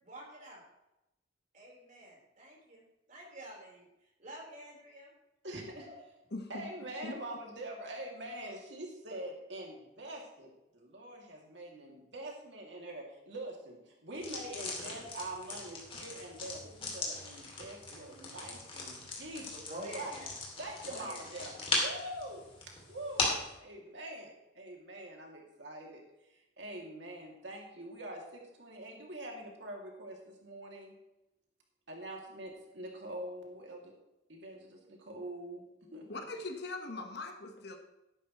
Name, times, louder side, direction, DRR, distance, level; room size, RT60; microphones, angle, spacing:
voice 1, 0.0-0.6 1.5-2.8 3.1-3.8 4.2-5.1 5.7-5.9 19.7-20.3 20.9-21.6, right 1 dB, 45° right, -3 dB, 4.3 m, -48 dB
voice 2, 5.4-5.9 6.5-19.7 19.9-20.2 20.6-23.3 23.6-26.0 26.3-30.9 31.9-33.9 34.3-35.7 35.9-36.1, right 1 dB, 70° right, 0 dB, 2.6 m, -44 dB
voice 3, 6.3-6.6 7.0-7.1 36.1-37.8, left 2 dB, 60° left, 5 dB, 1.4 m, -41 dB
sound 1, 14.1-23.5, left 2 dB, 30° left, 2.8 m, -38 dB
13.5 x 10.5 x 3.2 m, 0.90 s
head